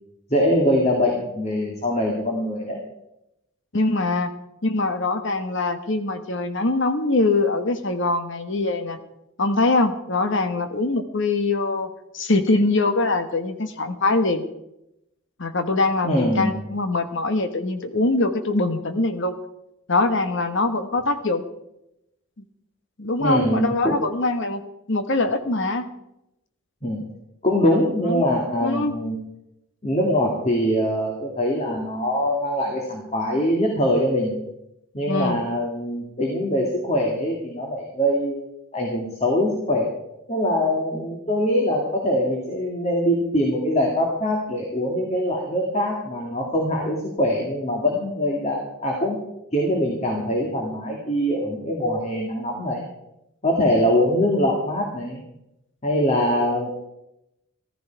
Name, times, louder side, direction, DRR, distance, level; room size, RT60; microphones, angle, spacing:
voice 1, 0.3-2.8 16.0-16.6 23.2-24.0 26.8-27.1 27.4-29.2 29.8-34.4 34.9-38.5 38.7-39.9 40.3-49.2 49.5-52.8 53.4-55.2 55.8-56.7, equal, 30° left, 0 dB, 2.2 m, -23 dB
voice 2, 3.7-4.3 4.6-9.0 9.4-11.9 12.1-14.4 15.4-19.3 19.9-21.5 23.0-24.6 24.9-25.8 28.1-28.2 28.6-28.9 35.1-35.4, left 2 dB, 60° left, 9 dB, 1.2 m, -23 dB
14.5 x 13.5 x 4.6 m, 0.86 s
head